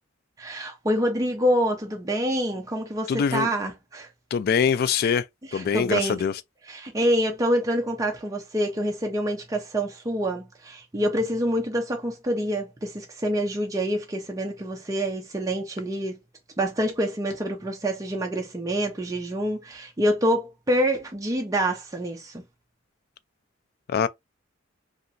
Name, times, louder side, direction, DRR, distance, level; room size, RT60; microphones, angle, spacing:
voice 1, 0.4-4.1 5.5-6.2 6.7-16.2 16.6-22.4, equal, 15° right, 0.5 m, -26 dB
voice 2, 3.1-3.5 4.3-5.2 5.5-6.3 23.9-24.1, left 7 dB, 50° left, 0.3 m, -23 dB
2.8 x 2.5 x 2.5 m
head